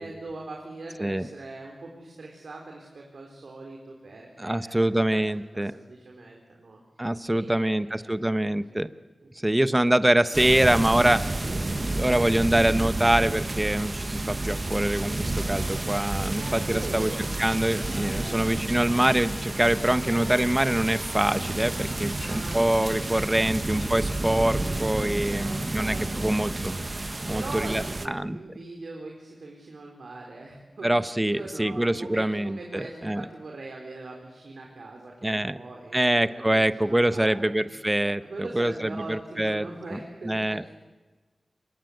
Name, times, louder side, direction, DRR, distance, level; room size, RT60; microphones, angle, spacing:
voice 1, 0.0-5.0 5.3-6.8 7.3-8.1 8.7-8.8 9.2-9.5 11.4-11.6 16.3-17.2 18.2-18.4 20.0-20.2 22.1-23.2 25.3-26.9 27.3-30.9 31.2-37.7 38.2-40.7, right 2 dB, 75° right, 0 dB, 4.3 m, -41 dB
voice 2, 4.4-5.7 7.0-8.9 9.4-11.2 12.0-17.1 17.4-26.7 27.2-28.4 30.8-33.2 35.2-35.6 35.9-39.7 39.9-40.0 40.2-40.7, right 1 dB, 15° right, 13 dB, 1.0 m, -24 dB
sound 1, 10.3-28.1, right 2 dB, 35° right, 1.4 m, -30 dB
sound 2, 17.1-25.1, left 2 dB, 55° left, 3.2 m, -45 dB
26.0 x 22.5 x 8.1 m, 1.3 s
cardioid pair, 55°, 0 cm